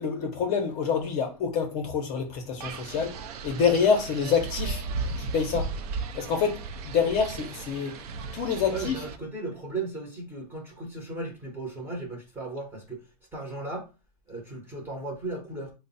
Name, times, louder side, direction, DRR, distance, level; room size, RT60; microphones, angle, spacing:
voice 1, 0.0-3.1 3.4-4.8 5.2-5.7 6.1-7.9 8.3-8.9, left 6 dB, 35° left, 0.6 m, -26 dB
Wind, 2.6-9.2, right 4 dB, 70° right, 0.5 m, -35 dB
voice 2, 8.7-13.0 13.3-13.9 14.3-15.7, right 2 dB, 10° right, 0.8 m, -36 dB
3.2 x 2.0 x 3.9 m
supercardioid pair, 145°, 21 cm